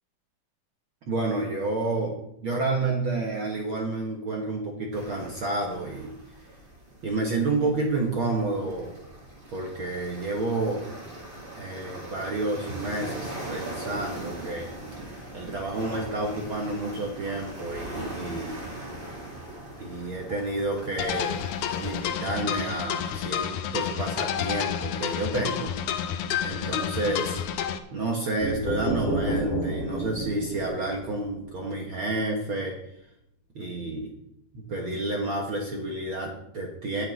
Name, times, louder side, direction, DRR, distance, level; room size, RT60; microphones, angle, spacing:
voice 1, 1.1-6.1 7.0-9.0 9.5-10.8 11.5-14.7 15.0-18.6 19.8-21.4 21.8-27.4 27.9-32.8 33.5-34.1 34.5-37.0, right 2 dB, 55° right, 0 dB, 1.5 m, -30 dB
sound 1, 4.9-22.0, right 1 dB, 15° right, 2.4 m, -40 dB
sound 2, 21.0-27.8, left 9 dB, 80° left, 1.8 m, -30 dB
sound 3, 28.4-32.1, right 1 dB, 55° left, 3.1 m, -30 dB
17.5 x 7.8 x 3.8 m, 0.79 s
omnidirectional pair, 4.2 m